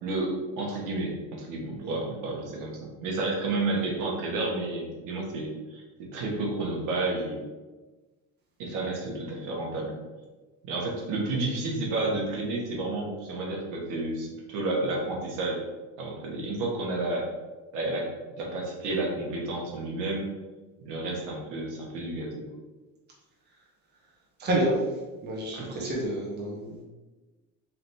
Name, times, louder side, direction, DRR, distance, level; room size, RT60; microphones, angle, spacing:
voice 1, 0.0-7.4 8.6-9.9 10.6-15.6 16.0-17.3 17.7-18.1 18.4-20.3 20.8-22.5 25.5-25.9, right 2 dB, 60° right, -1 dB, 1.2 m, -31 dB
voice 2, 24.4-24.8 25.2-26.8, right 1 dB, 30° right, -4 dB, 1.0 m, -29 dB
3.4 x 2.9 x 4.1 m, 1.2 s
cardioid pair, 130°, 34 cm